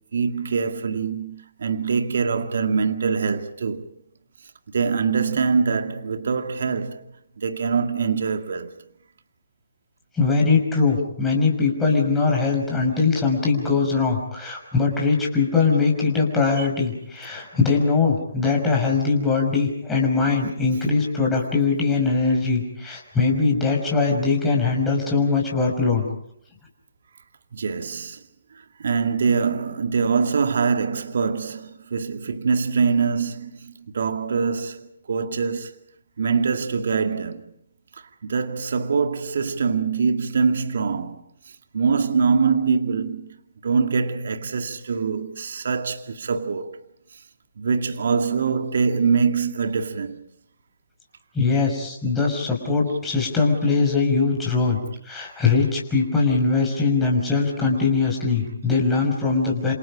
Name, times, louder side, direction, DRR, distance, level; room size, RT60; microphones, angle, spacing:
voice 1, 0.1-3.9 4.7-7.0 7.4-8.7 11.9-12.0 16.6-16.7 27.5-28.2 28.8-35.7 36.2-37.5 38.2-41.2 41.7-43.3 43.6-46.8 47.6-50.2, right 5 dB, 60° right, 2.1 m, -24 dB
voice 2, 10.2-26.0 51.3-54.8 55.1-59.7, left 4 dB, 10° left, 5.9 m, -21 dB
28.0 x 28.0 x 5.0 m
figure-of-eight pair, 140°, 0 cm